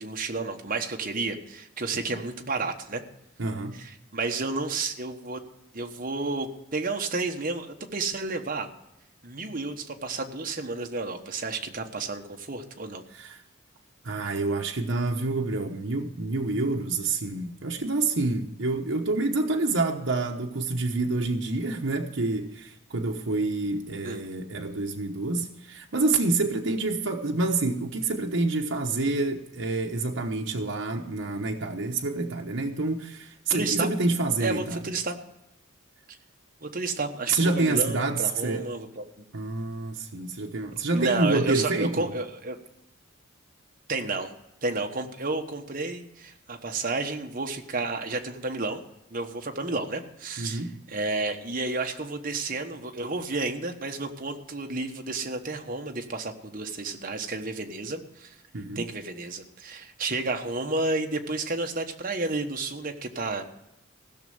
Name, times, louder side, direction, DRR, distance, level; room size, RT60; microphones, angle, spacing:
voice 1, 0.0-3.0 3.8-5.4 5.7-8.7 9.2-13.0 24.0-24.2 33.5-33.9 34.4-35.2 36.6-39.0 40.9-42.6 43.9-44.3 44.6-48.8 49.1-50.6 50.9-58.3 58.7-63.4, right 3 dB, 40° right, 4 dB, 1.2 m, -31 dB
voice 2, 3.4-3.8 13.1-13.4 14.0-34.8 37.3-38.6 39.3-42.1 50.4-50.7 58.5-58.8, right 3 dB, 65° right, 1 dB, 1.0 m, -27 dB
16.0 x 6.5 x 7.8 m, 0.86 s
head